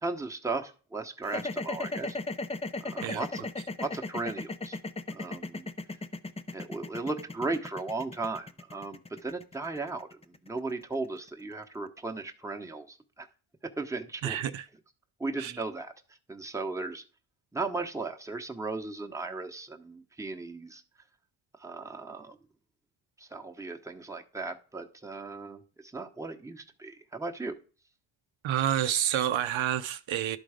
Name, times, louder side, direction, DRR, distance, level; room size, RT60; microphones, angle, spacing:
voice 1, 0.0-2.2 2.8-3.5 3.8-4.8 5.1-5.7 6.5-13.3 13.8-14.5 15.2-17.0 17.5-20.8 21.6-22.4 23.2-27.5, right 3 dB, 5° right, 1.0 m, -36 dB
sound 1, 1.2-11.4, left 3 dB, 15° left, 0.5 m, -36 dB
voice 2, 14.2-14.7 15.4-15.5 28.4-30.4, right 11 dB, 70° right, 0.7 m, -28 dB
11.5 x 3.9 x 4.9 m
cardioid pair, 90°, 49 cm